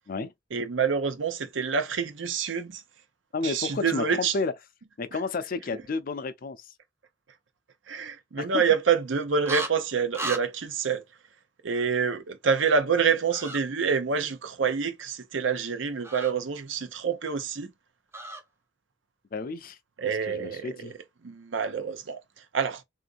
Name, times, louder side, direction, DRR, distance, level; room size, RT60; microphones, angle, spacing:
voice 1, 0.5-2.8 3.4-4.4 7.9-11.0 11.6-17.7 20.0-20.9 21.2-22.2 22.5-22.8, right 6 dB, 85° right, 0.6 m, -27 dB
voice 2, 3.3-4.5 5.0-6.7 8.4-8.6 19.3-19.8 20.0-20.9, left 4 dB, 50° left, 0.5 m, -31 dB
sound 1, 9.4-9.7 10.1-10.4 13.3-13.6 16.0-16.3 18.1-18.4, right 2 dB, 15° right, 0.5 m, -34 dB
3.7 x 2.6 x 2.4 m
head